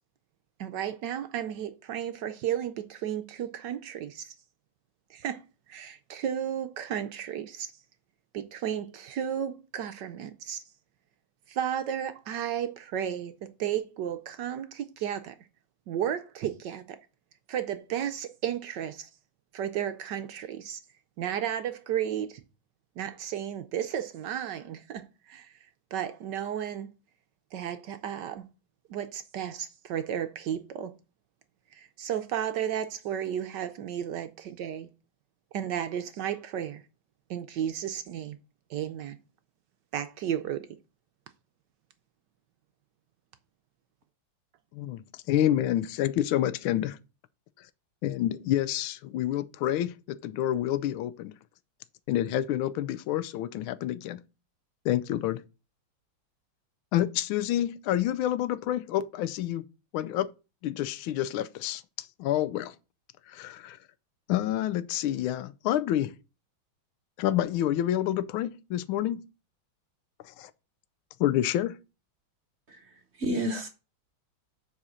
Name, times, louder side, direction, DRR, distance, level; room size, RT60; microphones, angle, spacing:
voice 1, 0.6-4.3 5.1-5.4 5.7-7.7 8.3-10.6 11.5-15.3 15.9-17.0 17.5-19.1 19.5-20.8 21.2-22.4 23.0-25.6 25.9-26.9 27.5-28.4 28.9-30.9 31.7-34.9 35.5-36.8 37.3-38.4 38.7-39.2 39.9-40.7, right 9 dB, 70° right, 1.1 m, -33 dB
voice 2, 44.7-47.0 48.0-51.3 52.1-54.2 54.8-55.4 56.9-59.6 59.9-60.3 60.6-62.7 63.3-63.8 64.3-66.1 67.2-69.2 70.2-70.5 71.2-71.8, left 12 dB, 85° left, 1.4 m, -28 dB
voice 3, 72.7-73.7, equal, 40° right, 1.0 m, -31 dB
7.3 x 4.3 x 6.3 m
omnidirectional pair, 2.2 m